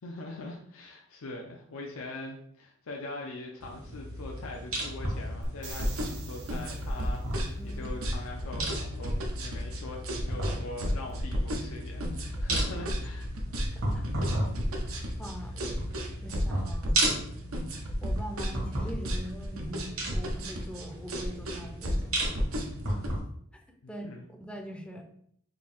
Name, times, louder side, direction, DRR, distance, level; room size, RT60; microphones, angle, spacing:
voice 1, 0.0-13.3 23.8-24.3, left 2 dB, 80° left, 0 dB, 0.5 m, -42 dB
sound 1, 3.6-23.2, right 1 dB, 75° right, 1.4 m, -35 dB
sound 2, 5.4-7.3 11.1-11.2, right 2 dB, 55° right, 0.7 m, -44 dB
sound 3, 5.7-23.1, equal, 90° right, 0.7 m, -33 dB
voice 2, 7.6-8.0 13.9-14.3 15.2-15.8 16.2-17.1 18.0-22.4 22.9-23.1 23.9-24.1 24.4-25.0, equal, 5° left, 3 dB, 0.4 m, -43 dB
3.8 x 2.6 x 3.4 m, 0.67 s
head